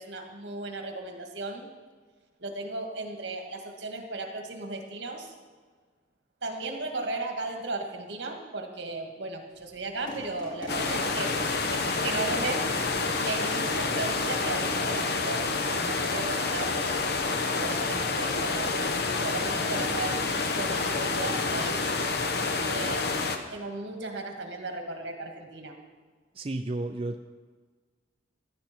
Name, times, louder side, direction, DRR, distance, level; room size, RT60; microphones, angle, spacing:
voice 1, 0.0-1.7 2.4-5.3 6.4-11.3 11.7-12.6 13.2-16.8 17.4-18.9 19.2-20.3 20.5-21.9 22.4-23.0 23.5-25.8, right 2 dB, 70° right, 3 dB, 1.9 m, -36 dB
sound 1, 9.5-23.5, left 1 dB, 25° left, 2.9 m, -46 dB
sound 2, 10.7-23.4, left 3 dB, 60° left, 1.1 m, -28 dB
voice 2, 26.3-27.2, right 2 dB, 30° right, 6 dB, 0.4 m, -32 dB
15.5 x 11.5 x 4.4 m, 1.5 s
head